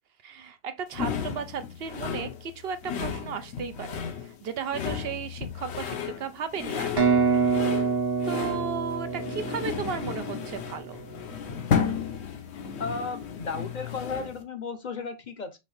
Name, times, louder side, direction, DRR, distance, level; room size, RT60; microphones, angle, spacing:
voice 1, 0.2-7.4 8.2-11.0, right 6 dB, 70° right, 0.8 m, -35 dB
sound 1, 0.9-14.4, left 7 dB, 90° left, 1.0 m, -33 dB
sound 2, 7.0-10.7, right 5 dB, 25° right, 0.7 m, -26 dB
voice 2, 12.8-15.6, left 4 dB, 50° left, 0.7 m, -34 dB
5.6 x 2.5 x 3.1 m
omnidirectional pair, 1.1 m